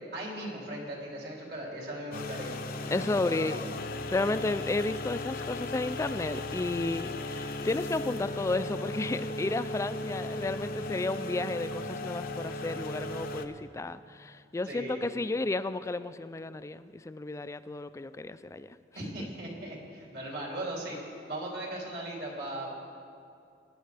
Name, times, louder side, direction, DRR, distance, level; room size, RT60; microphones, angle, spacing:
voice 1, 0.1-3.6 14.7-15.2 18.9-21.0 21.3-22.7, right 1 dB, 65° right, -2 dB, 3.1 m, -38 dB
sound 1, 2.1-13.5, left 2 dB, 55° left, 0.6 m, -36 dB
voice 2, 2.9-3.6 4.1-18.8, left 2 dB, 15° left, 13 dB, 0.3 m, -32 dB
22.0 x 10.0 x 3.4 m, 2.5 s
head